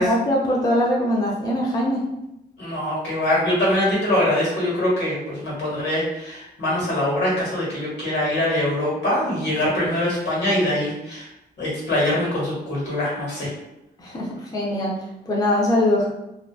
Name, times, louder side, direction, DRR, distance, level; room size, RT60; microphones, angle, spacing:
voice 1, 0.0-2.1 14.0-16.1, left 1 dB, 20° left, -4 dB, 0.4 m, -22 dB
voice 2, 2.6-11.3 11.6-13.5, left 1 dB, 80° left, -5 dB, 1.2 m, -23 dB
2.5 x 2.2 x 2.3 m, 0.89 s
wide cardioid pair, 135°, 18 cm